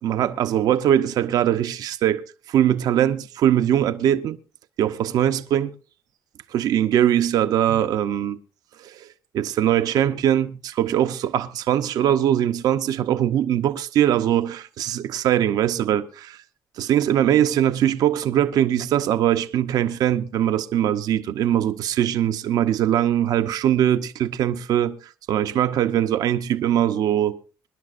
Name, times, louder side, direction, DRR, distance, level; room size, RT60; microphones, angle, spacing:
voice 1, 0.0-2.2 2.5-4.4 4.8-5.7 6.5-8.4 8.8-9.1 9.3-16.4 16.8-27.4, right 11 dB, 70° right, 0.7 m, -21 dB
25.5 x 11.0 x 2.5 m
cardioid pair, 140°, 7 cm